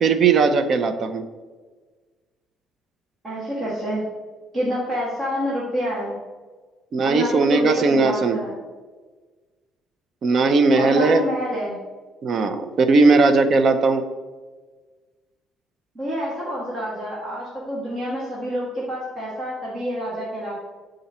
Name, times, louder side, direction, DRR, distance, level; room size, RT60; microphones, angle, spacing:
voice 1, 0.0-1.2 6.9-8.4 10.2-11.2 12.2-14.0, right 4 dB, 40° right, 8 dB, 0.5 m, -18 dB
voice 2, 3.2-4.0 4.5-6.2 7.0-8.5 10.7-11.8 15.9-20.6, equal, 25° right, -7 dB, 1.3 m, -28 dB
7.0 x 3.8 x 4.2 m, 1.4 s
cardioid pair, 160°, 0 cm